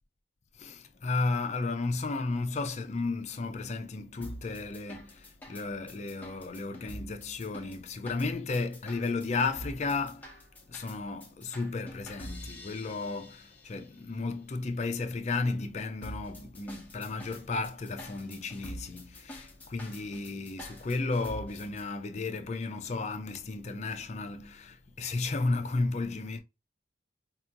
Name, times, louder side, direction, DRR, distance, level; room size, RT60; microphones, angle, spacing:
voice 1, 0.5-26.4, left 3 dB, 40° left, 0.4 m, -33 dB
sound 1, 4.2-13.8 16.0-21.8, equal, 10° left, 0.8 m, -46 dB
4.4 x 2.8 x 2.4 m
head